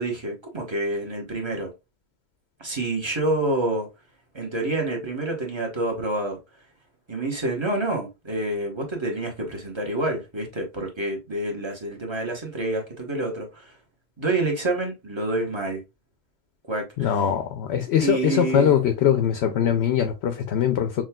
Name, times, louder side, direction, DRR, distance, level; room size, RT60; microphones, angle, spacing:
voice 1, 0.0-1.7 2.6-3.9 4.3-6.4 7.1-13.8 14.2-15.8 16.7-17.2 18.0-18.9, right 2 dB, 25° right, 1.0 m, -28 dB
voice 2, 17.0-21.0, left 9 dB, 65° left, 0.8 m, -22 dB
6.1 x 2.3 x 2.2 m
omnidirectional pair, 1.3 m